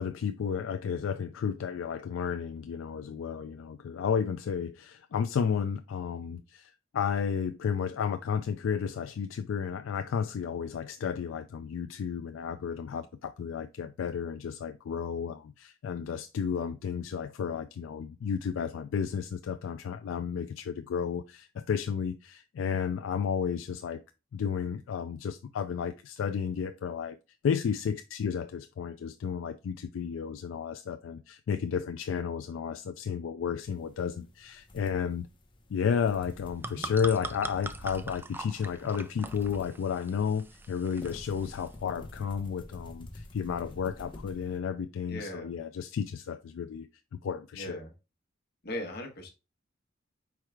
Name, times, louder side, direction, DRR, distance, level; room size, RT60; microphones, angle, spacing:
voice 1, 0.0-24.0 24.3-27.2 27.4-35.3 35.7-46.9 47.1-47.8, left 7 dB, 80° left, 0.3 m, -32 dB
sound 1, 33.7-44.6, left 1 dB, 25° left, 0.9 m, -49 dB
sound 2, 36.3-41.7, right 2 dB, 10° right, 0.3 m, -42 dB
voice 2, 45.1-45.5 47.5-47.9 48.6-49.3, left 1 dB, 55° left, 1.2 m, -38 dB
4.6 x 4.6 x 2.3 m
head